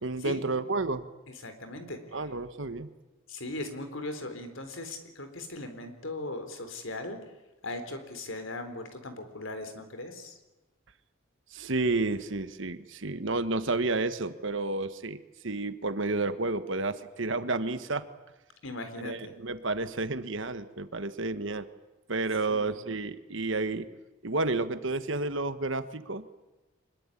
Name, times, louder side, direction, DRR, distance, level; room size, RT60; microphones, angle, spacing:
voice 1, 0.0-1.1 2.1-2.9 11.5-15.2 15.4-18.0 19.0-21.7 22.1-23.9 24.2-26.2, right 3 dB, 60° right, 11 dB, 1.4 m, -31 dB
voice 2, 1.3-2.3 3.3-7.2 7.6-10.4 18.6-19.3 22.5-22.8, left 2 dB, 70° left, 8 dB, 4.0 m, -39 dB
25.0 x 21.5 x 9.9 m, 1.1 s
head